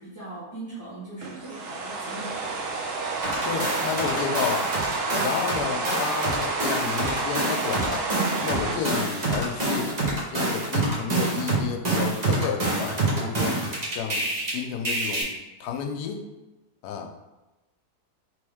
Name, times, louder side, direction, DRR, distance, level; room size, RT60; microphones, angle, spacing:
voice 1, 0.0-2.6, right 2 dB, 15° left, -10 dB, 0.8 m, -40 dB
sound 1, 1.2-10.4, right 3 dB, 90° right, 0.5 m, -30 dB
sound 2, 3.2-5.6 5.8-14.5 14.8-15.2, right 2 dB, 30° right, 0.9 m, -26 dB
voice 2, 3.4-4.7 5.2-9.9 10.3-13.6 13.9-16.3 16.8-17.1, left 7 dB, 85° left, 3 dB, 1.1 m, -31 dB
3.5 x 3.3 x 3.4 m, 1.1 s
omnidirectional pair, 1.7 m